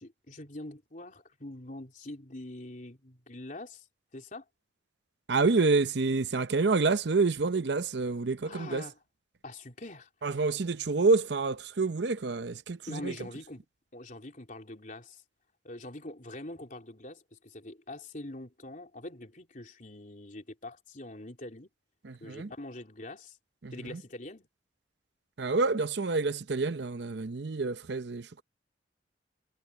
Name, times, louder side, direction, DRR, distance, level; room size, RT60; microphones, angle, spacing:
voice 1, 0.0-3.9 4.1-4.5 8.4-8.9 9.4-10.1 12.9-13.6 13.9-15.2 15.6-21.7 22.2-23.4 23.7-24.5, left 1 dB, 45° left, 3.7 m, -44 dB
voice 2, 5.3-8.8 10.2-13.2 22.0-22.5 23.6-24.0 25.4-28.4, right 3 dB, 65° right, 0.7 m, -28 dB
head